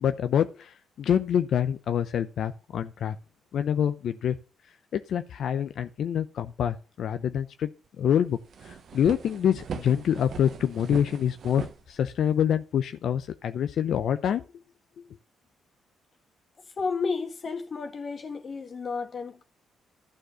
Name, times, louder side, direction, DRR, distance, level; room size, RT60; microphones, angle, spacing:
voice 1, 0.0-3.2 3.5-4.4 4.9-7.7 8.0-8.4 8.6-14.4, left 9 dB, 65° left, 0.7 m, -26 dB
sound 1, 7.9-8.0 8.3-12.5, right 7 dB, 60° right, 1.2 m, -40 dB
voice 2, 16.8-19.4, left 4 dB, 45° left, 1.8 m, -32 dB
11.5 x 4.4 x 6.3 m
cardioid pair, 90°, 0 cm